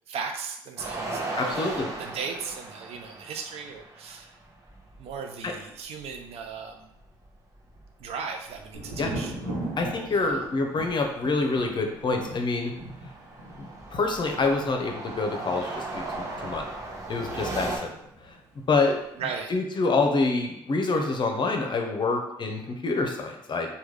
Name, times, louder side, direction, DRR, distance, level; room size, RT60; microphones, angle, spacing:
voice 1, 0.1-4.3 5.0-7.0 8.0-9.3 10.1-10.5 19.2-19.5, right 5 dB, 60° right, 4 dB, 0.5 m, -37 dB
sound 1, 0.8-5.2 5.4-5.5 5.8-8.2 8.5-10.3 10.9-11.1 11.5-17.8, right 2 dB, 25° right, 0.9 m, -37 dB
voice 2, 1.4-1.9 5.4-5.5 9.0-9.1 9.8-12.7 13.6-16.6 17.1-17.9 18.2-18.3 18.7-19.0 19.5-23.7, left 3 dB, 40° left, 3 dB, 0.7 m, -26 dB
Thunder, 8.7-18.4 18.6-19.4, right 1 dB, 85° right, 0.9 m, -40 dB
3.4 x 2.3 x 3.2 m, 0.77 s
hypercardioid pair, 50°, 12 cm